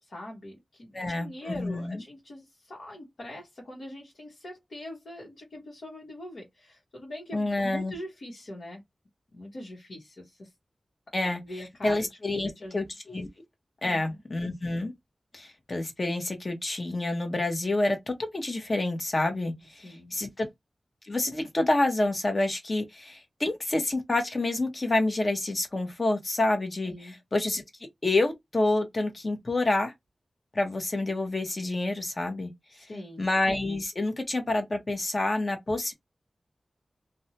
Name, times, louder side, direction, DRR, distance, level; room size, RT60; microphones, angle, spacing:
voice 1, 0.0-8.8 9.3-10.5 11.2-12.8 13.8-14.2 19.8-20.2 26.8-27.2 32.7-33.3, left 1 dB, 75° left, 1.1 m, -43 dB
voice 2, 0.9-2.0 7.3-7.9 11.1-11.4 11.8-13.3 13.8-14.9 15.3-19.5 19.8-20.5 21.1-27.6 28.0-29.9 30.5-32.5 33.2-35.9, left 2 dB, 45° left, 1.0 m, -28 dB
2.6 x 2.1 x 2.8 m
wide cardioid pair, 75°, 0 cm